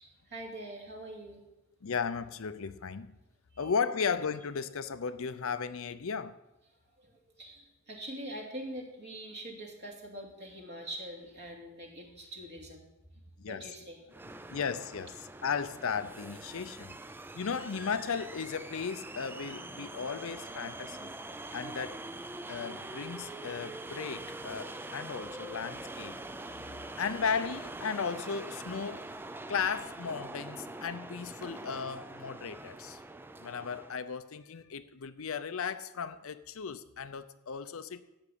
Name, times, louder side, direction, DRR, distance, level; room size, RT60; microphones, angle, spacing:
voice 1, 0.0-1.4 3.5-3.7 7.0-12.9 13.5-14.0, right 1 dB, 50° right, 2.7 m, -44 dB
voice 2, 1.8-3.1 3.6-6.4 13.4-13.7 14.5-15.1 15.4-16.9 17.3-21.1 21.5-22.0 22.5-26.1 27.0-29.1 29.5-33.0 33.4-38.0, left 6 dB, 65° left, 0.6 m, -35 dB
sound 1, 14.1-34.0, right 2 dB, 10° right, 0.3 m, -44 dB
13.5 x 6.0 x 8.5 m
head